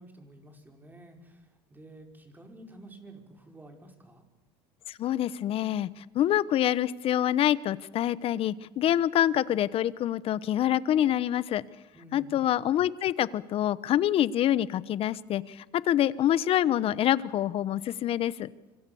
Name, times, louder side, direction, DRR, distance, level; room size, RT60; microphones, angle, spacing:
voice 1, 0.0-4.2 11.9-12.4, right 1 dB, 15° right, 4 dB, 5.3 m, -50 dB
voice 2, 4.9-11.6 12.1-18.5, left 11 dB, 45° left, 18 dB, 1.1 m, -26 dB
26.0 x 25.5 x 7.1 m, 1.1 s
supercardioid pair, 105°, 13 cm